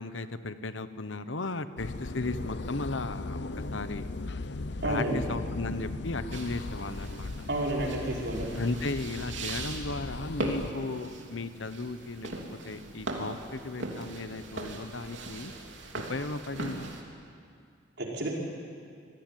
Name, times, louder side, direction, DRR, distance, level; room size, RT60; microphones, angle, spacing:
voice 1, 0.0-4.1 4.8-7.5 8.5-15.5 15.9-16.9, left 3 dB, 85° left, 12 dB, 1.1 m, -35 dB
sound 1, 1.8-10.7, left 2 dB, 65° left, 0.7 m, -38 dB
voice 2, 4.8-5.2 7.5-8.5 18.0-18.3, right 1 dB, 65° right, -2 dB, 4.9 m, -30 dB
sound 2, 6.3-17.0, right 2 dB, 80° right, 3.1 m, -40 dB
26.5 x 17.5 x 9.2 m, 2.4 s
head